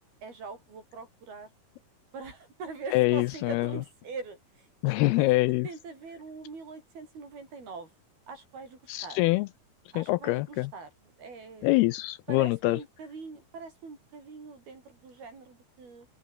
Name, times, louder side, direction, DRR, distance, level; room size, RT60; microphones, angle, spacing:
voice 1, 0.2-1.5 2.1-5.3 5.6-7.9 8.3-9.2 9.9-11.7 12.3-16.1, right 4 dB, 60° right, 9.0 m, -43 dB
voice 2, 2.9-3.7 4.8-5.7 8.9-9.5 10.0-10.7 11.6-12.8, left 21 dB, 85° left, 2.3 m, -25 dB
omnidirectional pair, 4.8 m